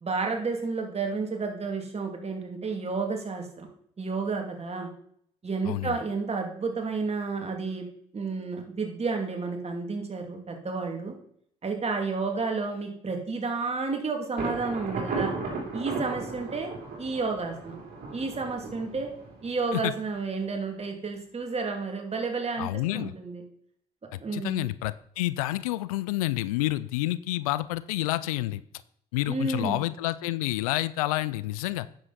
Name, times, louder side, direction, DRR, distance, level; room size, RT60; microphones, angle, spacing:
voice 1, 0.0-3.7 4.0-4.9 5.4-7.8 8.1-11.1 11.6-15.3 15.7-16.7 17.0-17.8 18.1-19.1 19.4-23.4 24.2-24.6 29.3-29.8, right 4 dB, 35° right, 3 dB, 2.5 m, -31 dB
voice 2, 5.6-6.0 19.7-19.9 22.6-23.1 24.3-28.6 29.1-31.9, left 17 dB, 85° left, 17 dB, 0.4 m, -29 dB
Thunder, 14.4-20.0, right 4 dB, 55° right, 3.0 m, -35 dB
9.8 x 7.7 x 4.1 m, 0.67 s
hypercardioid pair, 50°, 18 cm